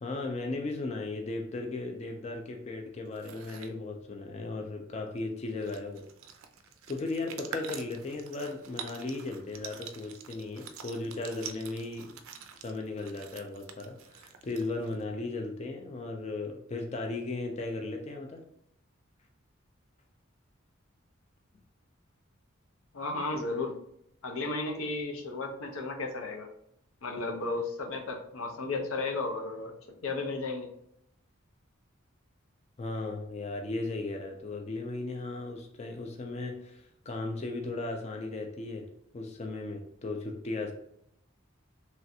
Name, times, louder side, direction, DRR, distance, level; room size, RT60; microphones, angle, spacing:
voice 1, 0.0-6.1 6.9-12.2 12.6-18.4 32.8-38.9 39.1-40.7, left 2 dB, 30° left, 3 dB, 0.4 m, -36 dB
sound 1, 3.1-3.7 5.2-5.3 5.5-15.0, right 7 dB, 80° right, 0.4 m, -46 dB
voice 2, 22.9-23.8 24.2-26.5 27.0-29.7 30.0-30.7, left 3 dB, 85° left, 4 dB, 0.6 m, -34 dB
3.1 x 2.4 x 2.7 m, 0.72 s
head